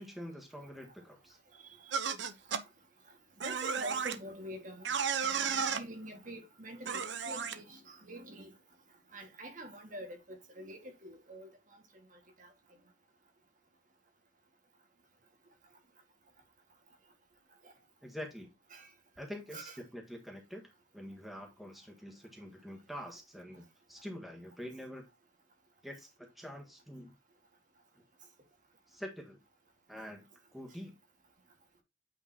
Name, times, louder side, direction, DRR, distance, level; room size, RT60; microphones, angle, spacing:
voice 1, 0.0-1.4 18.0-18.5 19.2-20.6 20.9-25.0 25.8-27.1 28.9-29.4 29.9-30.3 30.5-30.9, equal, ahead, 1.5 m, -46 dB
voice 2, 1.6-2.0 3.4-4.9 5.2-8.5 9.1-11.5 12.4-12.5 18.7-18.9 19.5-19.8, right 1 dB, 45° right, 1.7 m, -46 dB
sound 1, 1.9-2.6 3.4-4.1 4.8-5.8 6.8-7.5, right 6 dB, 80° right, 0.8 m, -33 dB
8.6 x 5.2 x 2.8 m
head